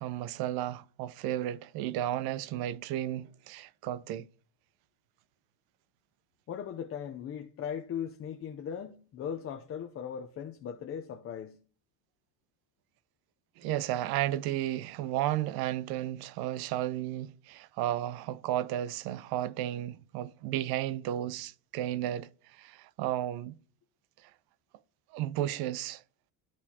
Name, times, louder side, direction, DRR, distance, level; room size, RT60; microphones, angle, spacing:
voice 1, 0.0-4.3 13.6-22.3 22.6-23.6 25.1-26.0, right 13 dB, 60° right, 0.6 m, -33 dB
voice 2, 6.5-11.6, left 8 dB, 35° left, 0.6 m, -38 dB
13.0 x 4.4 x 2.8 m
cardioid pair, 145°, 42 cm